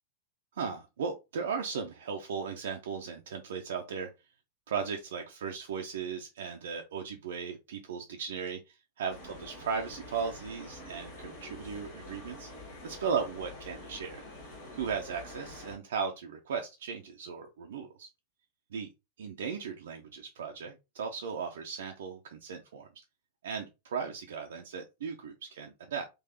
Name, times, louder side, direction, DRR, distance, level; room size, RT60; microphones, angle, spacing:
voice 1, 0.5-4.1 4.7-12.5 12.8-14.2 14.7-18.1 18.7-18.9 19.2-22.9 23.4-26.1, right 6 dB, 60° right, 0.5 m, -37 dB
sound 1, 9.1-15.8, left 1 dB, 50° left, 1.6 m, -47 dB
3.8 x 2.7 x 2.7 m
figure-of-eight pair, 90°, 0 cm